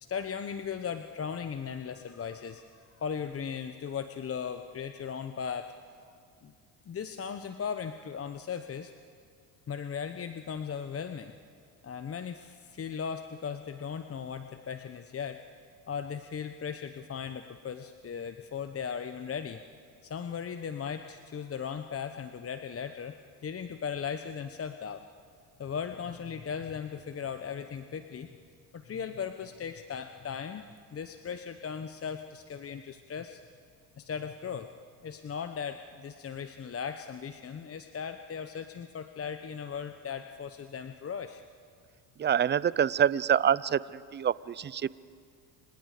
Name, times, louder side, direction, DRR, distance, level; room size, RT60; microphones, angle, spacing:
voice 1, 0.0-5.7 6.4-6.5 6.9-8.9 9.7-11.3 11.8-15.4 15.9-19.6 20.0-23.1 23.4-25.0 25.6-28.3 28.7-30.6 30.9-33.4 34.0-34.7 35.0-41.4, left 7 dB, 30° left, 9 dB, 1.0 m, -37 dB
voice 2, 42.2-44.9, right 9 dB, 25° right, 20 dB, 0.5 m, -26 dB
29.5 x 26.0 x 5.1 m, 2.2 s
hypercardioid pair, 75°, 47 cm